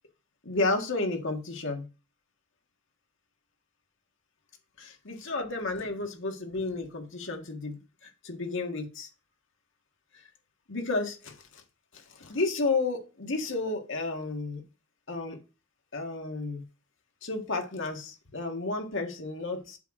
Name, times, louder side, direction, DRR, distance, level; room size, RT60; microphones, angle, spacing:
voice 1, 0.4-1.8 4.8-7.8 8.2-9.1 10.7-11.3 12.2-14.6 15.1-15.4 15.9-16.6 17.2-19.8, left 3 dB, 60° left, 3 dB, 1.7 m, -32 dB
8.1 x 3.8 x 6.3 m, 0.31 s
head